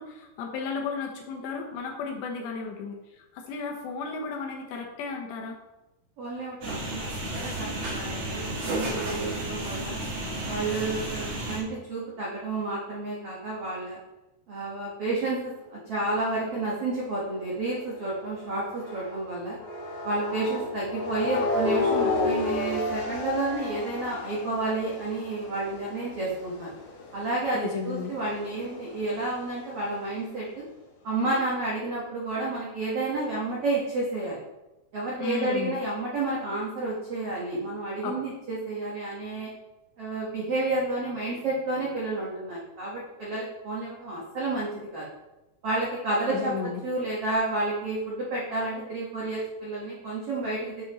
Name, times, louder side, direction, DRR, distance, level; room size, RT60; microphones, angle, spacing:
voice 1, 0.0-3.0 3.3-5.6 27.5-28.1 35.2-35.8 38.0-38.1 46.3-46.8, left 5 dB, 80° left, 1 dB, 3.3 m, -34 dB
voice 2, 6.2-10.0 10.5-14.0 14.5-19.6 20.0-26.7 27.1-30.6 31.0-34.4 34.9-39.5 40.0-45.1 45.6-46.5 46.8-50.8, right 2 dB, 85° right, -6 dB, 1.3 m, -30 dB
sound 1, 6.6-11.6, right 1 dB, 55° right, 1.9 m, -32 dB
sound 2, 16.4-19.2 19.6-30.0, left 3 dB, 65° left, 3.2 m, -33 dB
8.3 x 6.2 x 3.0 m, 1.0 s
omnidirectional pair, 5.0 m